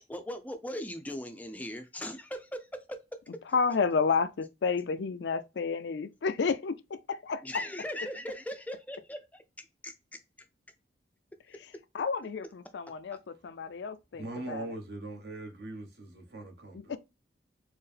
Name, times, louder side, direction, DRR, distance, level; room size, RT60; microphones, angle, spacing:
voice 1, 0.0-3.0 7.4-10.2, left 1 dB, 10° left, 0.4 m, -39 dB
voice 2, 3.5-7.6 11.9-14.7 16.7-17.0, left 5 dB, 75° left, 0.4 m, -31 dB
voice 3, 14.1-17.0, right 2 dB, 65° right, 1.0 m, -41 dB
4.5 x 2.0 x 3.3 m
head